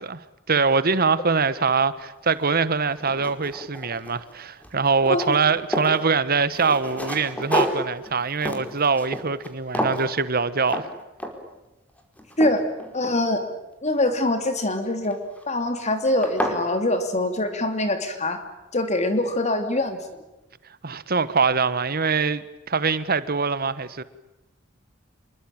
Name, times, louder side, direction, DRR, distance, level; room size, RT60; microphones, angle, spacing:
voice 1, 0.0-10.9 20.8-24.0, right 4 dB, 50° right, 1.5 m, -23 dB
sound 1, 2.3-2.4 2.9-4.3 4.6-6.0 6.5-9.5 9.7-10.1 10.7-10.9 11.2-11.6 12.0-13.6 15.0-15.4 15.9-16.0 16.2-16.6, equal, 5° left, 4.8 m, -30 dB
voice 2, 12.9-13.4 13.8-15.2 15.5-18.4 18.7-20.0, left 1 dB, 35° left, 2.9 m, -24 dB
27.5 x 23.0 x 9.0 m
head